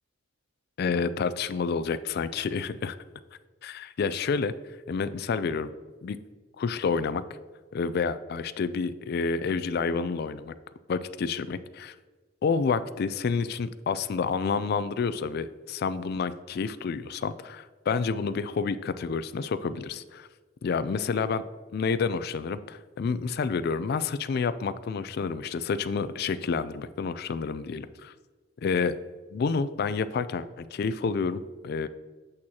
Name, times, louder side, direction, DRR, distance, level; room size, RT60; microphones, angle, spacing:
voice 1, 0.8-3.0 3.6-4.5 4.9-5.7 6.0-6.2 6.6-7.2 7.7-10.5 10.9-11.9 12.4-20.3 20.6-21.4 21.7-28.1 28.6-29.0 29.3-31.9, left 5 dB, 50° left, 13 dB, 0.3 m, -29 dB
8.5 x 6.3 x 2.8 m, 1.4 s
head